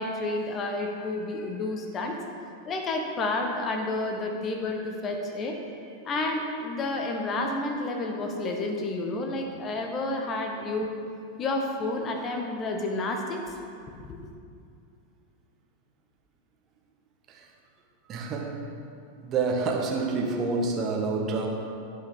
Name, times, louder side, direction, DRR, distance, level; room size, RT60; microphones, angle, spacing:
voice 1, 0.0-2.2 2.6-5.6 6.0-10.9 11.4-13.4 14.0-14.2, left 2 dB, 25° left, 3 dB, 1.1 m, -30 dB
voice 2, 18.1-18.6 19.2-21.5, right 4 dB, 30° right, 1 dB, 1.3 m, -27 dB
15.0 x 5.4 x 3.7 m, 2.5 s
figure-of-eight pair, 90°, 0 cm